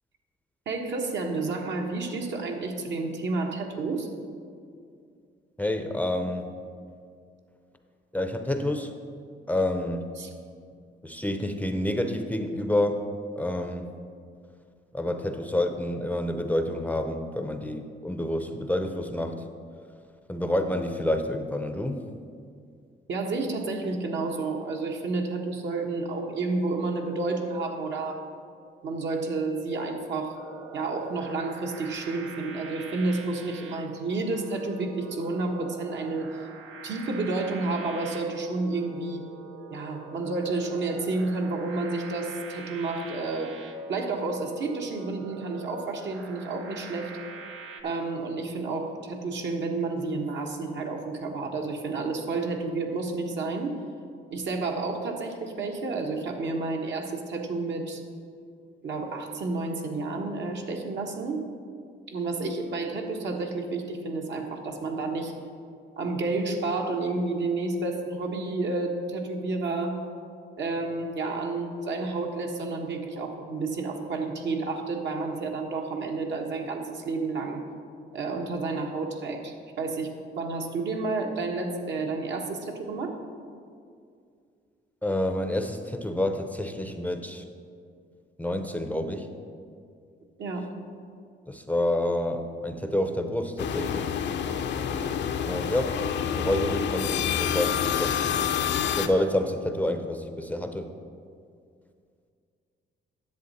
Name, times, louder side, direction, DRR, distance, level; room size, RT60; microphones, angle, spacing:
voice 1, 0.7-4.1 10.2-10.3 23.1-28.2 28.8-30.4 30.7-36.3 36.8-39.2 39.7-43.5 43.9-47.1 47.8-53.8 54.3-58.0 58.8-61.4 62.1-65.3 66.0-70.0 70.6-77.6 78.1-83.1 90.4-90.7, right 3 dB, 65° right, 2 dB, 1.3 m, -30 dB
voice 2, 5.6-6.5 8.1-8.9 9.5-10.1 11.0-13.0 13.4-13.9 14.9-19.4 20.3-22.0 85.0-87.4 88.4-89.3 91.5-94.1 95.4-96.0 96.4-98.3 99.0-100.9, left 1 dB, 5° left, 6 dB, 0.6 m, -28 dB
sound 1, 30.3-47.8, right 5 dB, 85° right, 0.8 m, -44 dB
sound 2, 93.6-99.1, left 8 dB, 65° left, 0.6 m, -28 dB
10.5 x 7.5 x 4.1 m, 2.3 s
cardioid pair, 90°, 20 cm